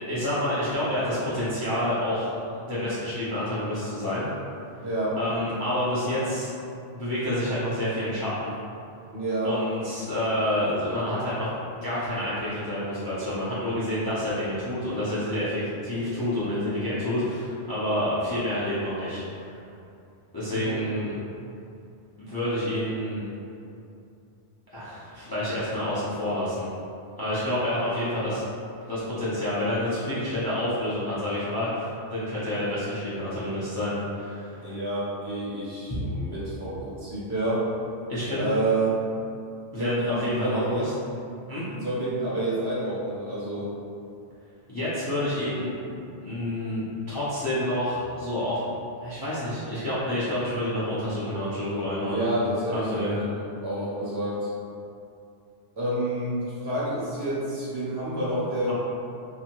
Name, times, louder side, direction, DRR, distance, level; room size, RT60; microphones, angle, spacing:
voice 1, 0.0-2.3 2.6-4.3 5.2-6.5 6.9-8.5 9.4-11.5 11.8-19.6 20.3-21.1 22.2-23.2 24.7-26.7 27.2-28.4 28.9-34.7 38.1-38.5 39.7-40.9 41.5-41.6 44.7-45.7 46.2-48.6 49.0-52.3 52.7-53.1 58.6-58.7, left 1 dB, 30° left, -12 dB, 0.5 m, -28 dB
voice 2, 4.8-5.2 9.1-9.5 20.5-20.7 34.6-37.6 38.3-39.0 39.7-40.9 41.6-43.7 52.0-53.2 53.6-54.5 55.8-58.7, right 1 dB, 60° right, -9 dB, 1.1 m, -29 dB
2.7 x 2.6 x 2.8 m, 2.5 s
omnidirectional pair, 1.2 m